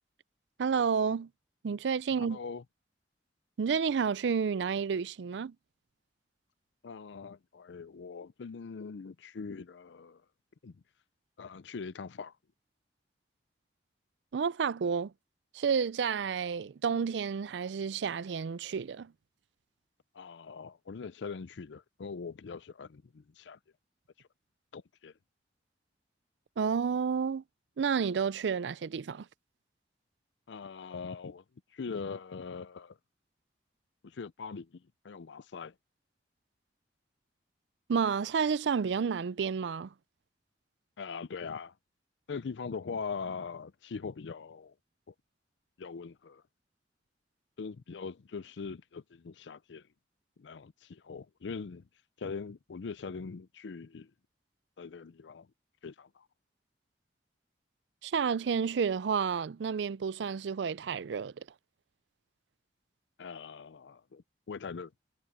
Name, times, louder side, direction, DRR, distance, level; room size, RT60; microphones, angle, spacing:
voice 1, 0.6-1.3 1.6-2.4 3.6-5.5 14.3-15.1 15.5-19.1 26.6-27.4 27.8-29.3 37.9-39.9 58.0-61.5, right 6 dB, 80° right, 0.4 m, -30 dB
voice 2, 2.2-2.6 6.8-10.2 10.6-10.8 11.4-12.3 20.1-23.6 24.7-25.1 30.5-31.4 31.7-33.0 34.0-35.7 41.0-41.7 42.3-44.7 45.8-46.4 47.6-49.8 50.4-51.8 52.2-54.1 54.8-55.5 55.8-56.3 63.2-64.9, left 5 dB, 90° left, 0.5 m, -42 dB
head